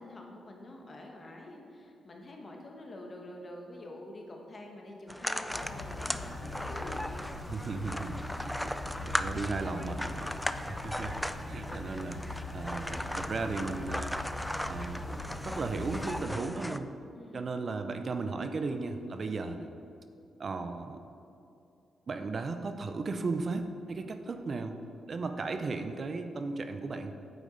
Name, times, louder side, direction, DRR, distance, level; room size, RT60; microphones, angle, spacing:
voice 1, 0.0-7.1 8.2-8.5 17.1-17.5, left 1 dB, 40° left, 1 dB, 1.3 m, -46 dB
sound 1, 5.1-16.8, equal, 5° left, 0.3 m, -37 dB
sound 2, 5.5-16.2, left 2 dB, 90° left, 0.9 m, -41 dB
voice 2, 7.5-10.3 10.6-12.2 12.5-14.2 14.6-16.9 17.3-19.7 20.4-21.1 22.1-24.8 25.1-27.2, right 3 dB, 50° right, 7 dB, 0.5 m, -36 dB
8.8 x 5.1 x 4.0 m, 2.6 s
cardioid pair, 65°, 0 cm